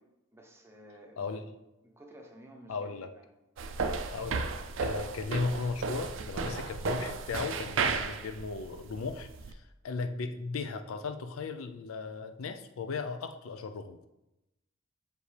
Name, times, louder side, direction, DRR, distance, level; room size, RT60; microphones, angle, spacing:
voice 1, 0.3-1.4 1.8-3.2, right 1 dB, 10° right, 2 dB, 0.7 m, -53 dB
voice 2, 1.2-1.5 2.7-3.1 4.1-4.5 4.8-14.0, left 4 dB, 80° left, 8 dB, 0.4 m, -36 dB
sound 1, 3.6-9.5, right 4 dB, 65° right, 0.4 m, -34 dB
6.5 x 5.1 x 3.3 m, 0.94 s
head